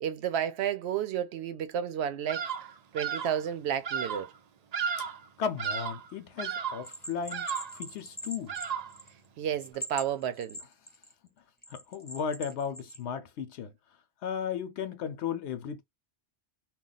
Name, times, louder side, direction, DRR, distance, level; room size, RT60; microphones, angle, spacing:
voice 1, 0.0-2.5 2.9-4.3 9.4-10.6, right 9 dB, 75° right, 0.8 m, -31 dB
Bird vocalization bird call bird song, 2.3-2.7 3.0-3.4 3.8-4.3 4.7-5.3 5.6-6.1 6.4-6.9 7.3-7.8 8.5-9.0, right 7 dB, 60° right, 0.4 m, -34 dB
voice 2, 5.4-7.5 7.8-8.5 11.7-13.7 14.2-15.8, left 7 dB, 80° left, 0.9 m, -35 dB
Bell, 6.8-9.3 9.6-11.1 11.6-13.0, equal, 10° left, 0.5 m, -42 dB
2.3 x 2.3 x 3.9 m
omnidirectional pair, 1.1 m